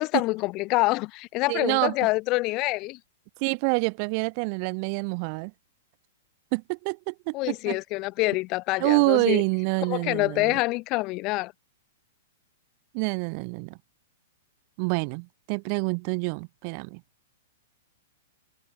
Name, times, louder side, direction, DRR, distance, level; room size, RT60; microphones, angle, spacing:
voice 1, 0.0-3.0 7.3-9.4 9.9-11.5, left 22 dB, 25° left, 2.0 m, -26 dB
voice 2, 1.5-1.9 3.4-5.5 6.5-7.8 8.8-10.6 12.9-13.8 14.8-17.0, right 38 dB, 30° right, 3.3 m, -27 dB
hypercardioid pair, 175°, 0 cm